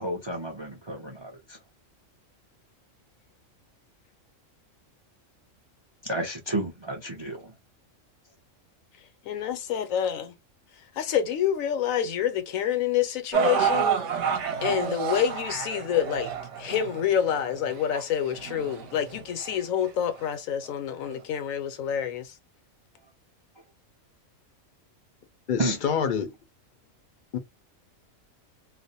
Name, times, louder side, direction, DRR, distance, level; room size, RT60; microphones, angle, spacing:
voice 1, 0.0-1.6 6.0-7.5 25.6-25.8, right 1 dB, 45° right, 0.3 m, -31 dB
voice 2, 9.2-10.3 10.9-13.9 14.6-16.3 16.6-22.3, left 9 dB, 90° left, 1.0 m, -27 dB
sound 1, 13.3-19.5 20.2-20.3 21.1-21.2, right 7 dB, 70° right, 0.8 m, -29 dB
voice 3, 25.5-26.3 27.3-27.4, left 7 dB, 60° left, 0.5 m, -26 dB
2.5 x 2.0 x 2.7 m
omnidirectional pair, 1.4 m